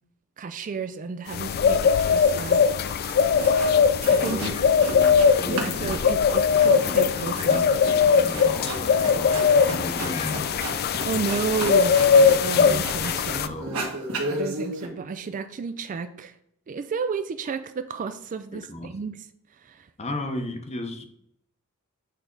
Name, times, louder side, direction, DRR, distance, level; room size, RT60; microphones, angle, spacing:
voice 1, 0.4-2.8 4.1-4.5 5.4-7.6 11.1-13.6 14.3-16.3 16.7-19.2 19.5-19.9, right 5 dB, 35° right, 10 dB, 0.3 m, -32 dB
sound 1, 1.3-13.5, left 6 dB, 45° left, 0.3 m, -20 dB
sound 2, 3.1-3.7 4.0-5.3 5.6-13.3 13.6-14.9, right 2 dB, 65° right, 1.6 m, -34 dB
voice 2, 4.2-10.9 12.2-12.9 13.4-13.9 18.5-18.9 20.0-21.0, left 1 dB, 30° left, 6 dB, 0.8 m, -35 dB
8.3 x 3.4 x 3.8 m, 0.71 s
head